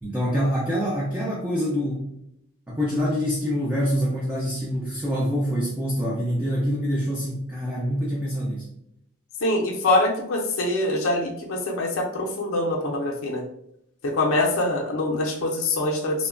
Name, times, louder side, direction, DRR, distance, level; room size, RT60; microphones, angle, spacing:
voice 1, 0.0-2.0 2.7-8.6, equal, 10° right, -5 dB, 0.4 m, -25 dB
voice 2, 9.4-13.4 14.0-16.3, left 2 dB, 75° left, 0 dB, 0.5 m, -24 dB
3.0 x 2.1 x 2.4 m, 0.75 s
head